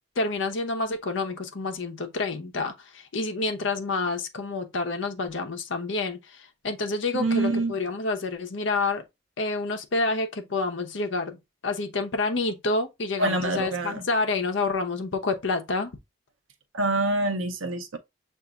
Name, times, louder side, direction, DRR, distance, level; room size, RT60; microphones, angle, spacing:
voice 1, 0.2-9.0 9.4-11.4 11.6-15.9, left 3 dB, 75° left, 0.8 m, -28 dB
voice 2, 7.1-7.8 13.2-14.0 16.7-18.0, right 2 dB, 90° right, 0.8 m, -26 dB
6.9 x 2.6 x 2.4 m
head